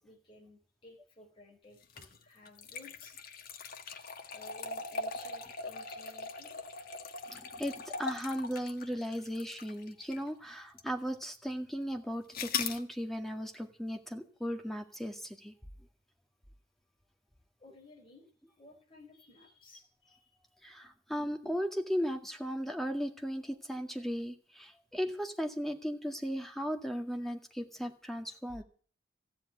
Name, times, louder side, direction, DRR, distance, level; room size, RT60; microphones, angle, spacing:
voice 1, 0.0-3.1 4.3-6.5 17.6-18.3 18.6-20.4, left 2 dB, 30° left, -1 dB, 4.9 m, -56 dB
sound 1, 1.8-10.3 10.8-10.9 12.3-12.8, left 4 dB, 50° left, 1.6 m, -40 dB
voice 2, 7.3-15.5 20.6-28.6, equal, ahead, 4 dB, 2.0 m, -36 dB
15.5 x 7.8 x 9.2 m, 0.42 s
head